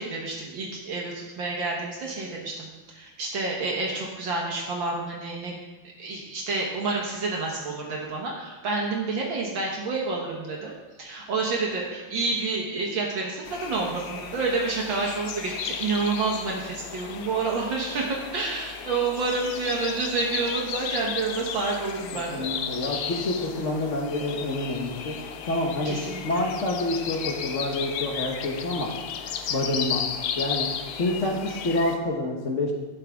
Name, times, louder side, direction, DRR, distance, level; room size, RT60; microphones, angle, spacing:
voice 1, 0.0-2.7 2.9-5.6 6.0-10.7 11.0-22.5 25.8-26.2 31.2-31.3, right 3 dB, 65° right, -2 dB, 1.8 m, -29 dB
sound 1, 13.5-32.0, left 7 dB, 80° left, 0.8 m, -34 dB
voice 2, 22.1-25.2 25.4-28.9 29.5-30.0 30.4-30.7 31.0-32.7, left 2 dB, 45° left, 0 dB, 1.1 m, -28 dB
12.0 x 7.3 x 3.5 m, 1.2 s
omnidirectional pair, 2.3 m